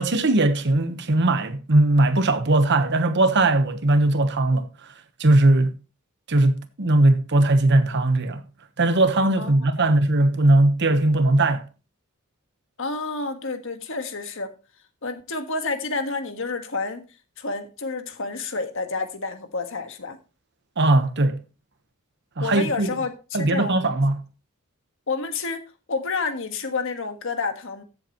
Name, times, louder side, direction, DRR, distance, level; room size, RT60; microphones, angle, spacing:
voice 1, 0.0-4.9 5.2-5.8 6.3-8.4 8.8-11.6 20.8-21.4 22.4-22.9 23.3-24.2, right 2 dB, 55° right, 1.1 m, -19 dB
voice 2, 12.8-14.5 15.0-17.1 17.4-20.2 22.4-23.9 25.1-27.8, left 3 dB, 65° left, 1.5 m, -29 dB
14.0 x 7.9 x 3.0 m
head